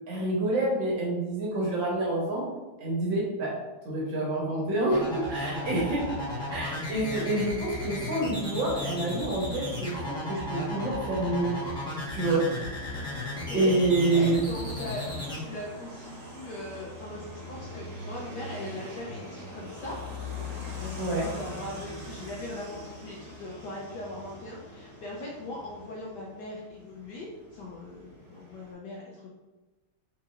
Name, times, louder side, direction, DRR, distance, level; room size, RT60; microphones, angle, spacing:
voice 1, 0.1-2.4 2.8-3.5 3.8-6.1 6.5-11.5 12.1-12.4 13.5-14.4 21.0-21.3, right 2 dB, 65° right, -3 dB, 1.6 m, -27 dB
sound 1, 4.9-15.4, left 2 dB, 5° left, 0.5 m, -35 dB
sound 2, 10.9-28.7, left 2 dB, 45° right, 1.7 m, -43 dB
voice 2, 14.1-20.0 20.8-29.3, left 2 dB, 70° left, -3 dB, 1.1 m, -40 dB
4.5 x 3.8 x 2.5 m, 1.2 s
omnidirectional pair, 2.4 m